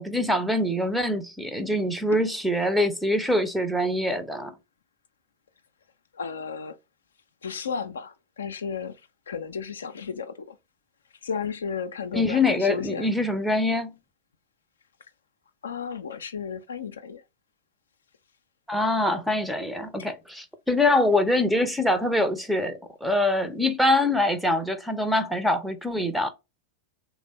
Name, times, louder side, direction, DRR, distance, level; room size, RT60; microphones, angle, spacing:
voice 1, 0.0-4.5 12.1-14.0 18.7-26.3, left 1 dB, ahead, 0.5 m, -24 dB
voice 2, 6.1-6.8 7.4-10.6 11.2-13.1 15.6-17.2 20.0-20.1, left 6 dB, 70° left, 0.4 m, -34 dB
3.2 x 2.1 x 3.8 m
figure-of-eight pair, 90°, 0 cm